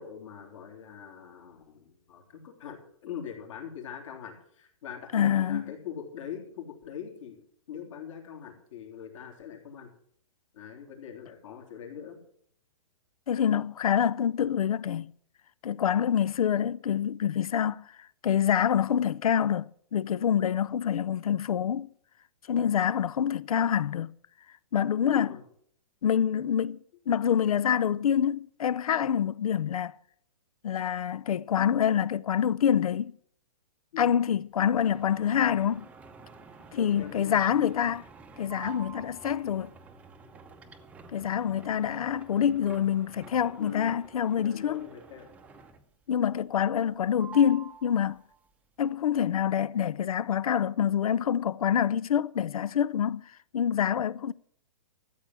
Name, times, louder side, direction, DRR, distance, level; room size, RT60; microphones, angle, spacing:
voice 1, 0.0-7.4 7.7-9.9 10.5-12.2 25.0-25.4 33.9-34.1 36.7-37.4 43.6-44.0 44.3-45.3, left 8 dB, 65° left, 3.7 m, -42 dB
voice 2, 5.1-5.7 13.3-15.1 15.6-17.9 18.2-21.9 22.5-24.1 24.7-25.4 26.0-29.9 30.6-33.1 34.0-35.9 36.8-38.0 38.4-39.7 41.1-44.9 46.1-48.2 48.8-53.2 53.5-54.3, left 9 dB, 85° left, 0.6 m, -26 dB
sound 1, 34.6-46.0 46.4-46.9 47.2-48.5, right 5 dB, 10° right, 0.7 m, -49 dB
13.5 x 8.1 x 7.3 m
hypercardioid pair, 155°, 18 cm